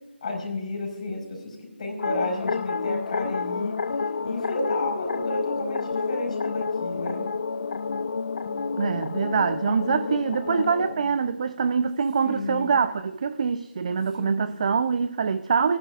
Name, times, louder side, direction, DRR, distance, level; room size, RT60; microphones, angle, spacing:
voice 1, 0.2-3.8 4.2-7.3 8.4-8.5 8.9-9.0 10.0-10.3 10.8-11.0 12.2-12.8 13.9-14.5, left 2 dB, 40° left, 4.7 m, -32 dB
sound 1, 2.0-11.0, left 4 dB, 55° left, 0.5 m, -29 dB
voice 2, 8.8-15.8, right 5 dB, 35° right, 0.5 m, -24 dB
27.5 x 10.0 x 2.4 m
figure-of-eight pair, 165°, 6 cm